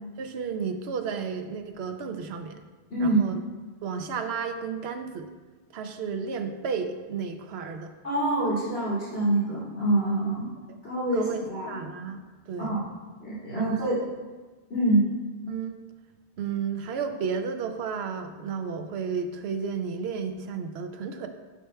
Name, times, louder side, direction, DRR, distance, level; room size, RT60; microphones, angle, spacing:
voice 1, 0.2-2.6 3.0-3.3 3.8-5.3 5.7-7.9 11.1-12.7 13.6-13.9 15.5-15.8 16.4-21.3, right 6 dB, 70° right, 6 dB, 0.8 m, -32 dB
voice 2, 2.9-3.2 8.0-10.4 10.8-11.7 12.6-12.8 13.2-14.0 14.7-15.1, right 2 dB, 70° left, -10 dB, 2.4 m, -25 dB
10.0 x 5.8 x 2.2 m, 1.3 s
omnidirectional pair, 1.2 m